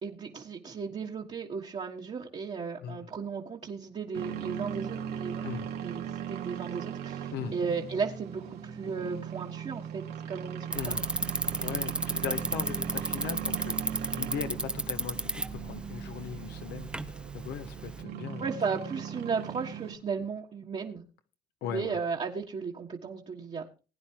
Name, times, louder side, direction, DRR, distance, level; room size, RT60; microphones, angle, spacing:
voice 1, 0.0-5.5 5.8-11.0 18.4-21.0 21.6-23.7, right 5 dB, 35° right, 1.6 m, -35 dB
sound 1, 4.1-19.9, right 8 dB, 75° right, 2.5 m, -38 dB
voice 2, 10.7-11.1 11.6-18.5 21.6-22.0, left 9 dB, 75° left, 1.4 m, -39 dB
Bicycle, 10.7-18.0, right 1 dB, 5° right, 0.8 m, -34 dB
20.5 x 9.7 x 3.0 m
cardioid pair, 110°, 17 cm